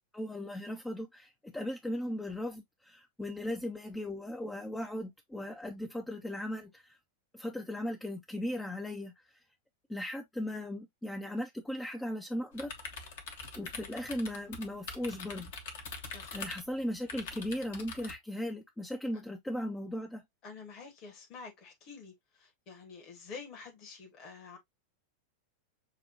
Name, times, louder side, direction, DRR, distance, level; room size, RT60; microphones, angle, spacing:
voice 1, 0.1-7.0 7.3-9.3 9.9-12.9 13.6-15.6 16.3-20.2, left 1 dB, 5° left, 0.5 m, -37 dB
sound 1, 12.5-18.1, left 4 dB, 55° left, 1.0 m, -44 dB
voice 2, 20.4-24.6, left 5 dB, 40° left, 1.2 m, -48 dB
6.5 x 2.2 x 2.6 m
figure-of-eight pair, 90°, 0 cm